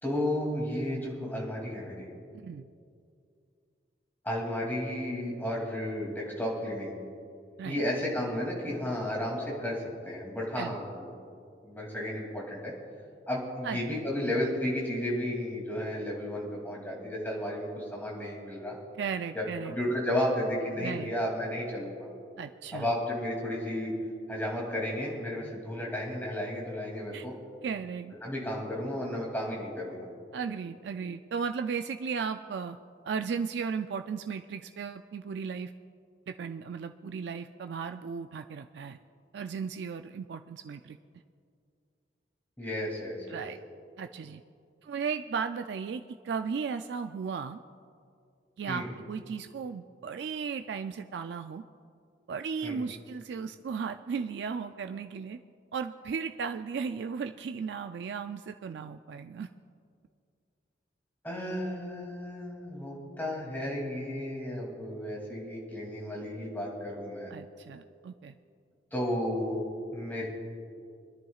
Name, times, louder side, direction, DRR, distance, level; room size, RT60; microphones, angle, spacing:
voice 1, 0.0-2.1 4.2-6.9 7.6-11.1 11.6-12.7 13.3-18.8 19.3-22.1 22.7-23.9 24.3-27.3 28.2-30.1 42.6-43.4 48.7-48.9 52.6-52.8 61.2-67.3 68.9-70.3, left 1 dB, 10° left, -3 dB, 2.6 m, -33 dB
voice 2, 2.3-2.7 7.6-7.8 10.6-10.7 13.6-13.8 19.0-19.8 20.7-21.1 22.4-22.9 27.1-27.3 27.6-28.1 30.3-32.8 33.0-35.7 36.3-39.0 39.3-41.0 43.3-43.6 44.0-44.4 44.8-47.6 48.6-51.6 52.3-55.4 55.7-59.5 67.3-68.3, right 6 dB, 75° right, 7 dB, 0.3 m, -35 dB
26.0 x 10.5 x 2.4 m, 2.4 s
head